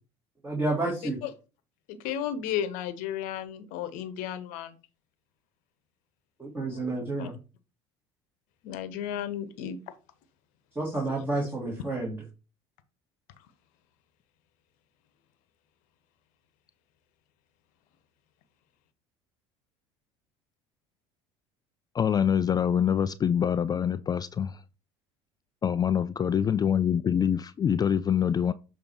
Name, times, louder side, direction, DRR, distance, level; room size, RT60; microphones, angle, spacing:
voice 1, 0.4-1.2 6.4-7.4 10.8-12.2, right 2 dB, 15° right, 2.1 m, -30 dB
voice 2, 1.9-4.8 6.6-7.3 8.6-9.8, left 9 dB, 65° left, 1.0 m, -34 dB
voice 3, 21.9-24.6 25.6-28.5, left 8 dB, 25° left, 0.3 m, -25 dB
6.9 x 3.4 x 4.4 m
hypercardioid pair, 70°, 15 cm